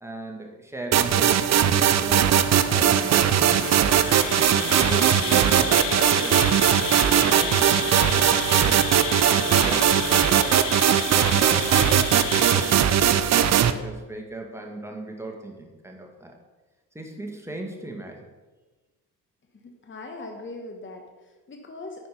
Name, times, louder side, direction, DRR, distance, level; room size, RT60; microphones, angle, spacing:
voice 1, 0.0-1.4 2.0-3.7 4.2-8.8 9.3-10.8 11.3-12.7 13.2-16.4 16.9-18.3, right 1 dB, 5° right, 1 dB, 2.0 m, -37 dB
sound 1, 0.9-13.7, right 9 dB, 35° right, 0.6 m, -20 dB
Insect, 2.6-13.4, left 9 dB, 60° left, 0.9 m, -32 dB
voice 2, 19.6-22.1, left 2 dB, 25° left, 4 dB, 1.2 m, -40 dB
9.2 x 6.2 x 5.2 m, 1.2 s
figure-of-eight pair, 40°, 48 cm